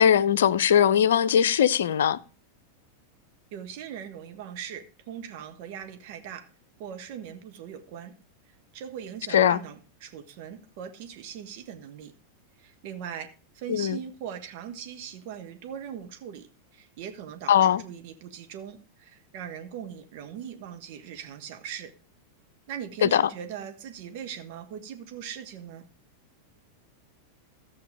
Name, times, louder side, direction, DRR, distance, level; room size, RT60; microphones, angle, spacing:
voice 1, 0.0-2.2 9.3-9.6 13.7-14.0 17.5-17.8 23.0-23.3, left 9 dB, 60° left, 0.7 m, -20 dB
voice 2, 3.5-6.4 6.8-8.1 8.7-12.1 12.6-16.5 16.7-21.9 22.7-25.9, right 8 dB, 50° right, 1.4 m, -40 dB
13.5 x 8.0 x 5.0 m
figure-of-eight pair, 90°, 0 cm